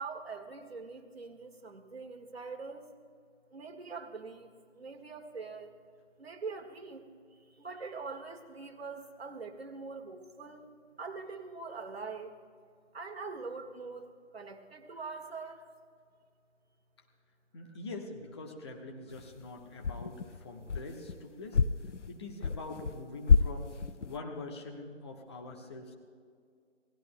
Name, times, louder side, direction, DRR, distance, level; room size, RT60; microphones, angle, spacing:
voice 1, 0.0-2.9 3.5-5.8 6.2-12.3 12.9-15.7, right 4 dB, 55° right, 3 dB, 1.8 m, -43 dB
voice 2, 17.5-21.6 22.1-25.9, left 2 dB, 20° left, 1 dB, 1.1 m, -44 dB
sound 1, 19.1-19.5 19.8-21.2 21.5-23.0 23.3-24.2, left 5 dB, 75° left, 0.7 m, -29 dB
28.0 x 18.0 x 2.2 m, 2.2 s
figure-of-eight pair, 150°, 36 cm